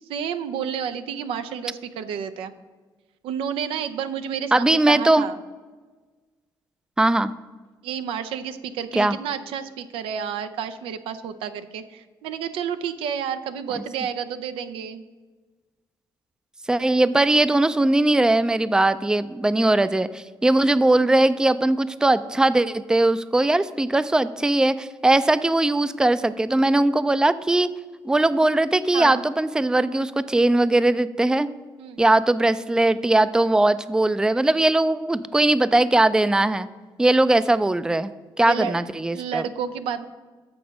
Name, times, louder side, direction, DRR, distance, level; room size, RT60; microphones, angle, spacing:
voice 1, 0.1-2.5 3.2-5.4 7.8-15.0 28.9-29.2 31.8-32.0 38.4-38.8 39.1-40.1, right 8 dB, 85° right, 10 dB, 0.5 m, -30 dB
voice 2, 4.5-5.2 7.0-7.3 9.0-9.2 16.7-27.7 28.0-31.5 32.0-36.7 37.0-38.1 38.4-39.4, right 2 dB, 10° right, 14 dB, 0.4 m, -20 dB
6.8 x 6.1 x 6.2 m, 1.3 s
cardioid pair, 70°, 9 cm